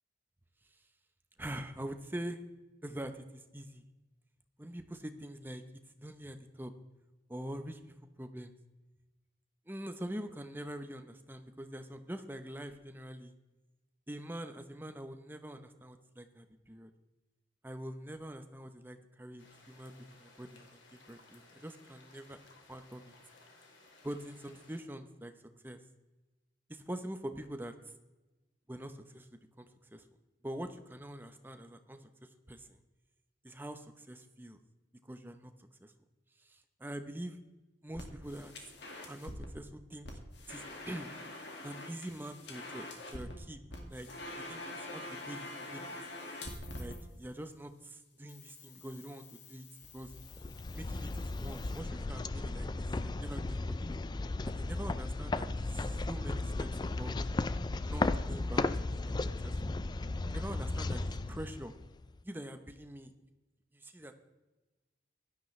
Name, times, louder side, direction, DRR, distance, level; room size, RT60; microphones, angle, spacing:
voice 1, 1.4-2.4 2.8-3.9 4.6-5.6 6.0-6.7 7.3-8.5 9.7-13.3 14.1-16.9 17.6-22.4 22.7-23.1 24.0-25.3 25.6-25.8 26.7-27.7 28.7-30.1 30.4-32.8 33.4-34.6 35.0-35.9 36.4-37.4 37.8-38.7 39.1-40.2 40.5-41.1 41.6-44.1 44.4-45.9 46.8-49.7 49.9-50.1 50.7-53.7 54.4-57.3 57.8-59.2 59.4-59.7 60.3-61.7 62.2-63.1 63.7-64.1, right 1 dB, 10° right, 8 dB, 0.8 m, -44 dB
sound 1, 19.4-24.8, left 3 dB, 80° left, 2.5 m, -60 dB
sound 2, 37.9-39.5 40.0-43.4 43.7-47.0 48.3-51.8, left 1 dB, 65° left, 2.1 m, -46 dB
sound 3, 50.0-62.1, left 2 dB, 20° left, 0.3 m, -35 dB
16.5 x 12.0 x 3.2 m, 1.1 s
head